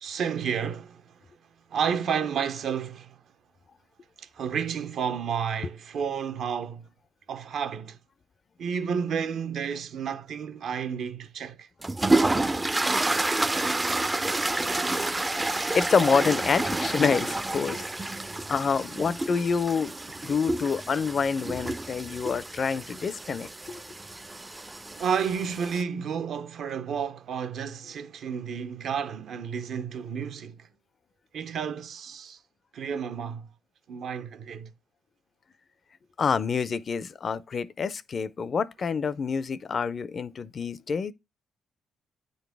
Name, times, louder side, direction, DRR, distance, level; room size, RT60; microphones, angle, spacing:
voice 1, 0.0-1.1 1.7-3.2 4.2-6.9 7.3-8.0 8.6-11.7 25.0-30.7 31.3-32.4 32.7-33.5 33.9-34.7, right 7 dB, 65° right, 0.7 m, -31 dB
sound 1, 11.8-25.8, right 2 dB, 15° right, 0.4 m, -29 dB
voice 2, 15.7-17.9 18.5-19.9 20.2-23.8 36.2-41.1, left 5 dB, 45° left, 0.4 m, -27 dB
8.9 x 4.0 x 3.4 m
cardioid pair, 90°, 0 cm